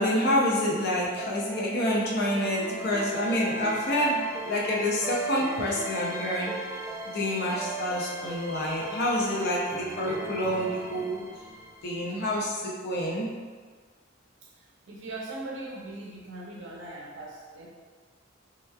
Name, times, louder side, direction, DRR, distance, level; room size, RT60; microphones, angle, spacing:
voice 1, 0.0-6.6 7.1-11.2 11.8-13.4, left 1 dB, 50° left, -4 dB, 0.6 m, -28 dB
sound 1, 1.1-12.4, right 1 dB, 15° right, 0.4 m, -38 dB
voice 2, 14.9-17.7, right 2 dB, 65° right, -3 dB, 0.6 m, -39 dB
3.4 x 2.9 x 2.3 m, 1.5 s
head